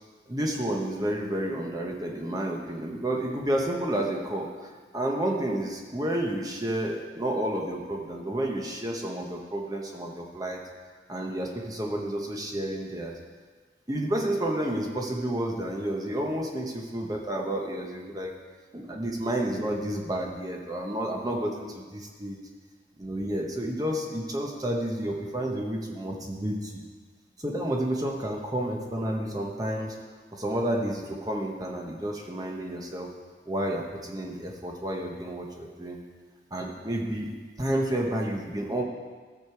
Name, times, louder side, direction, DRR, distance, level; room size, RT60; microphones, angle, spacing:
voice 1, 0.3-10.6 11.1-13.2 13.9-18.3 18.7-22.4 23.0-26.8 27.4-30.0 30.3-33.1 33.5-36.0 36.5-38.8, right 1 dB, 20° right, 0 dB, 1.0 m, -30 dB
14.0 x 6.6 x 4.6 m, 1.5 s
head